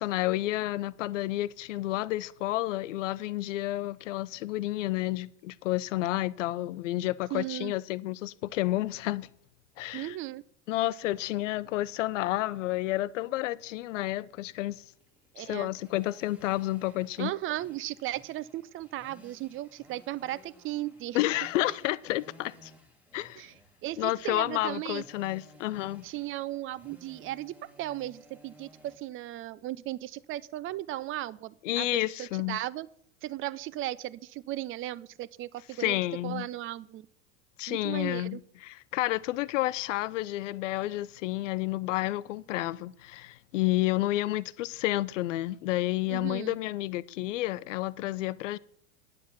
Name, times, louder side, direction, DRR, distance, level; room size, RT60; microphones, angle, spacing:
voice 1, 0.0-9.3 9.8-10.2 10.7-14.8 15.4-17.3 21.1-22.7 23.1-23.4 24.0-26.0 31.6-32.6 35.8-36.5 37.6-48.6, left 16 dB, 75° left, 0.6 m, -30 dB
voice 2, 7.3-7.7 9.9-10.4 15.3-15.7 17.2-21.2 23.4-23.5 23.8-25.0 26.0-32.9 33.2-37.1 37.7-38.4 46.1-46.6, right 15 dB, 35° right, 0.5 m, -36 dB
sound 1, 14.9-29.0, equal, 5° right, 1.7 m, -57 dB
9.9 x 7.5 x 5.9 m
hypercardioid pair, 100°, 37 cm